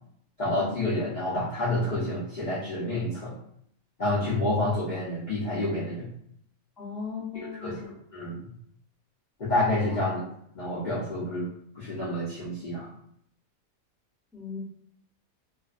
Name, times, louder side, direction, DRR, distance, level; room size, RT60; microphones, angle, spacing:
voice 1, 0.4-3.3 4.0-6.1 7.3-8.4 9.4-10.2 10.5-11.5 11.7-12.9, left 1 dB, 60° left, -8 dB, 0.5 m, -29 dB
voice 2, 6.8-7.9 14.3-14.6, left 5 dB, ahead, -7 dB, 0.4 m, -37 dB
2.4 x 2.1 x 2.4 m, 0.71 s
omnidirectional pair, 1.5 m